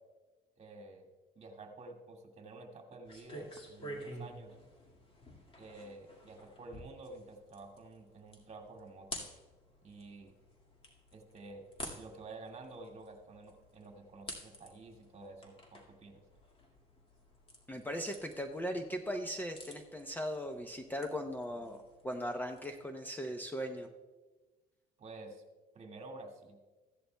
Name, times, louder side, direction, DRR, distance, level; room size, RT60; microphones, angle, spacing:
voice 1, 0.6-1.0 1.4-4.5 5.6-9.2 9.8-10.3 11.1-11.7 11.9-16.2 25.0-25.4 25.7-26.6, right 2 dB, 40° right, 2 dB, 1.9 m, -50 dB
sound 1, 3.0-22.7, equal, 30° left, 2.0 m, -51 dB
voice 2, 17.7-23.9, equal, 10° left, 5 dB, 0.7 m, -38 dB
15.5 x 11.0 x 2.2 m, 1.2 s
cardioid pair, 110°, 17 cm